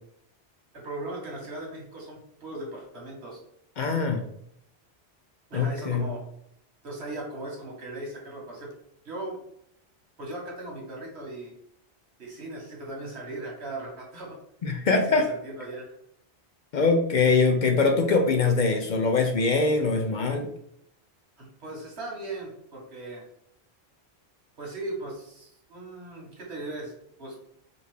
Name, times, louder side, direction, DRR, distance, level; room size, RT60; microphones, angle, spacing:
voice 1, 0.7-3.4 5.5-6.3 6.8-8.7 9.0-9.4 10.2-11.5 12.2-14.4 15.1-15.9 21.4-23.3 24.6-26.9 27.2-27.3, right 2 dB, 85° right, -2 dB, 1.7 m, -38 dB
voice 2, 3.8-4.2 5.5-6.1 14.6-15.2 16.7-20.5, left 4 dB, 55° left, 4 dB, 0.6 m, -23 dB
5.1 x 2.6 x 3.2 m, 0.73 s
omnidirectional pair, 1.1 m